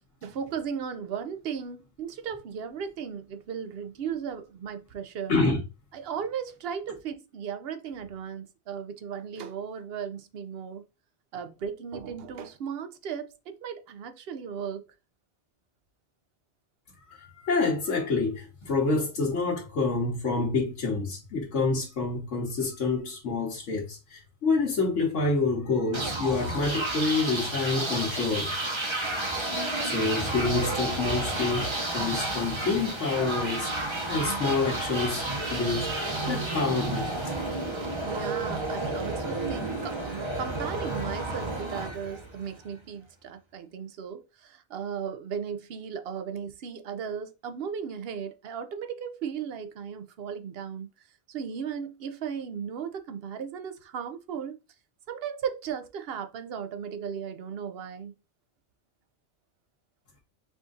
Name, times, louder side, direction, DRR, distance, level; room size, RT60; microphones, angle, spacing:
voice 1, 0.2-5.4 5.9-10.8 11.3-14.9 37.8-50.9 51.3-54.6 55.1-58.1, right 7 dB, 60° right, 0.8 m, -36 dB
voice 2, 5.3-5.6 17.1-28.5 29.8-33.7 34.1-35.2 35.5-36.0 36.2-37.4, left 3 dB, 85° left, 1.4 m, -27 dB
sound 1, 25.9-42.7, right 2 dB, 25° right, 0.9 m, -31 dB
4.9 x 2.5 x 3.8 m
omnidirectional pair, 1.2 m